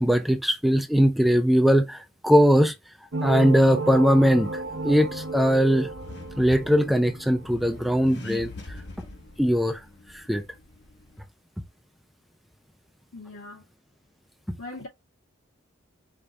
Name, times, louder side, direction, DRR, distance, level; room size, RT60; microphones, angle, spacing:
voice 1, 0.0-2.7 3.2-5.9 6.4-8.5 9.4-9.8 10.1-10.4 14.5-14.6, equal, ahead, 0.5 m, -20 dB
sound 1, 3.1-8.0, right 3 dB, 80° right, 1.3 m, -33 dB
Accelerating revving vroom, 3.9-11.2, left 2 dB, 55° left, 1.3 m, -44 dB
voice 2, 13.1-13.7 14.6-14.9, left 2 dB, 85° left, 2.3 m, -40 dB
5.1 x 2.4 x 4.3 m
head